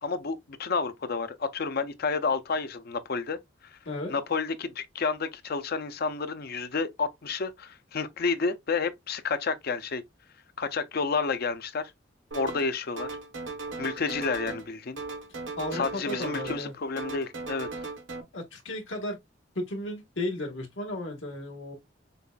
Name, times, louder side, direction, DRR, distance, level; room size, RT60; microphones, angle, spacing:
voice 1, 0.0-3.8 4.1-10.0 10.6-11.9 12.3-13.1 13.8-15.0 15.7-17.7, left 4 dB, 55° left, 0.5 m, -30 dB
voice 2, 3.8-4.2 15.6-16.7 18.3-19.2 19.5-21.7, left 1 dB, 85° left, 1.6 m, -34 dB
sound 1, 12.3-12.7 13.0-14.7 15.0-16.7 17.0-18.2, right 3 dB, 85° right, 1.3 m, -37 dB
6.7 x 2.5 x 2.3 m
head